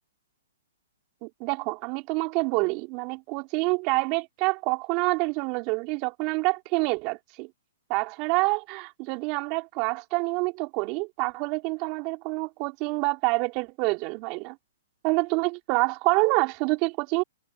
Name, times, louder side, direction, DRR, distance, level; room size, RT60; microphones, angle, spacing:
voice 1, 1.2-7.5 7.9-14.6 15.0-17.2, right 28 dB, 35° right, 3.5 m, -27 dB
hypercardioid pair, 140°, 0 cm